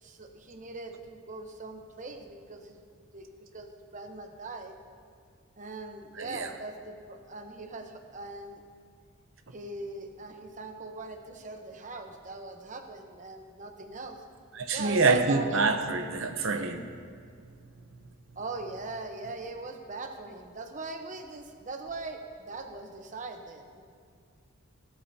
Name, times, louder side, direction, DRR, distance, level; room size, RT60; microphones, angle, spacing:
voice 1, 0.0-2.8 3.1-3.2 3.5-4.7 5.6-8.6 9.5-14.2 14.7-15.5 18.4-23.8, right 3 dB, 35° right, 5 dB, 0.9 m, -41 dB
voice 2, 6.2-6.5 14.5-16.9, right 3 dB, 65° right, 6 dB, 0.8 m, -26 dB
16.0 x 12.5 x 2.8 m, 2.2 s
head